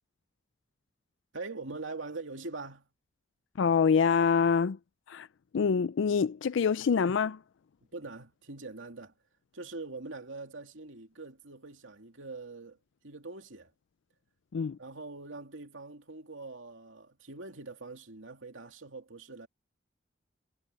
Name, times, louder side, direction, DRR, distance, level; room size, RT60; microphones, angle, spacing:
voice 1, 1.3-2.9 7.9-9.1 9.5-12.8 13.0-13.7 14.8-19.5, right 3 dB, 75° right, 2.7 m, -43 dB
voice 2, 3.6-4.8 5.1-5.3 5.5-7.4 14.5-14.8, left 6 dB, 65° left, 0.4 m, -25 dB
head